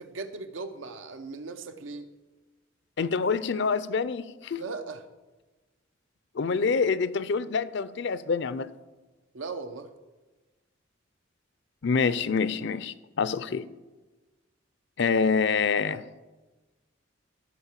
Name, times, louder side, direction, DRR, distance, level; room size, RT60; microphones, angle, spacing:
voice 1, 0.0-2.1 4.5-5.0 9.3-9.9, right 4 dB, 85° right, 0.9 m, -38 dB
voice 2, 3.0-4.6 6.3-8.7 11.8-13.7 15.0-16.0, left 5 dB, 60° left, 0.5 m, -26 dB
14.0 x 4.8 x 7.3 m
head